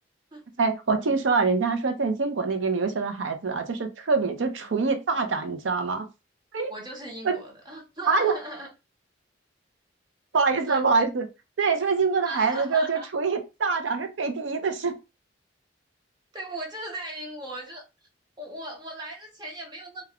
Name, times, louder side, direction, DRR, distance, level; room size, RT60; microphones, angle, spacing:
voice 1, 0.6-6.1 6.5-6.7 7.2-7.4 8.1-8.3 10.3-11.3 11.6-15.0, right 4 dB, 80° right, 0.6 m, -25 dB
voice 2, 6.7-8.7 10.7-11.0 12.2-13.1 16.3-17.8 18.4-20.0, right 1 dB, 25° right, 0.8 m, -38 dB
2.3 x 2.2 x 3.5 m
head